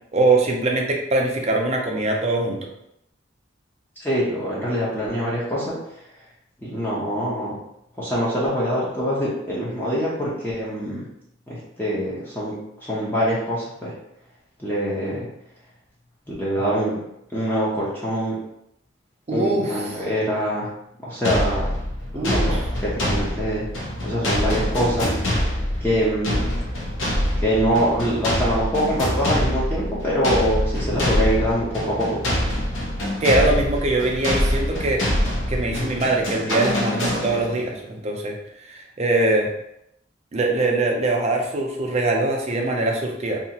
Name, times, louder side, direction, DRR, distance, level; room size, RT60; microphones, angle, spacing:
voice 1, 0.1-2.7 19.3-19.8 22.1-22.6 33.2-35.1 35.5-38.4 38.7-39.5 40.3-43.4, right 2 dB, 35° right, 1 dB, 0.5 m, -22 dB
voice 2, 4.0-5.8 6.6-7.6 8.0-11.0 11.5-12.5 12.8-13.9 14.6-15.2 16.4-17.0 17.3-18.4 19.3-20.7 21.0-21.7 22.1-22.5 22.8-23.6 24.0-25.2 25.8-26.6 27.4-32.3, equal, 10° left, -8 dB, 0.6 m, -24 dB
sound 1, 21.2-37.7, left 1 dB, 90° left, 0.7 m, -25 dB
2.7 x 2.4 x 2.8 m, 0.79 s
head